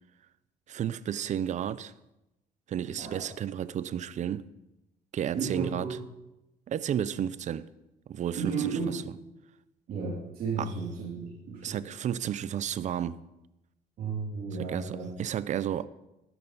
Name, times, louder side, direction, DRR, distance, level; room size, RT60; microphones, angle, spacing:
voice 1, 0.7-1.9 2.7-4.5 5.1-5.9 6.7-7.7 8.1-8.5 10.6-10.7 11.6-13.2 14.6-15.9, right 9 dB, 45° right, 0.5 m, -32 dB
voice 2, 3.0-3.3 5.3-6.0 8.3-9.0 9.9-11.8 14.0-15.1, right 5 dB, 60° right, 2.8 m, -33 dB
12.5 x 10.5 x 4.0 m
cardioid pair, 110°, 17 cm